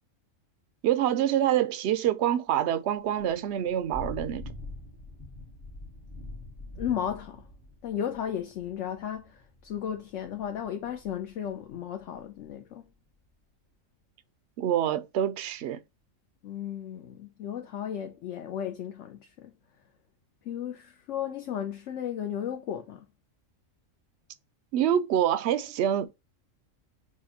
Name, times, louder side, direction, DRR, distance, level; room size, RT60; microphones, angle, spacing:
voice 1, 0.8-4.5 14.6-15.8 24.7-26.1, right 10 dB, 65° right, 0.7 m, -26 dB
Thunder / Rain, 3.0-12.5, left 2 dB, 50° left, 1.6 m, -45 dB
voice 2, 6.8-7.5 7.8-12.8 16.4-19.5 20.4-23.0, left 9 dB, 70° left, 1.0 m, -34 dB
6.2 x 2.3 x 2.8 m
omnidirectional pair, 1.4 m